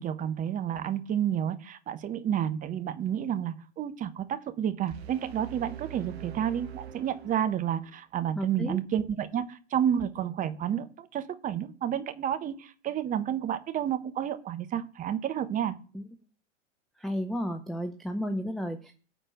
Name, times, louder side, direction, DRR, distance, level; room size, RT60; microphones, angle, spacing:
voice 1, 0.0-15.8, right 9 dB, 20° right, 10 dB, 1.0 m, -30 dB
sound 1, 4.9-7.9, right 9 dB, 60° right, 1.1 m, -44 dB
voice 2, 8.3-8.8 15.9-16.1 17.0-18.9, equal, ahead, 8 dB, 0.4 m, -32 dB
9.9 x 4.5 x 7.7 m, 0.39 s
figure-of-eight pair, 95°, 37 cm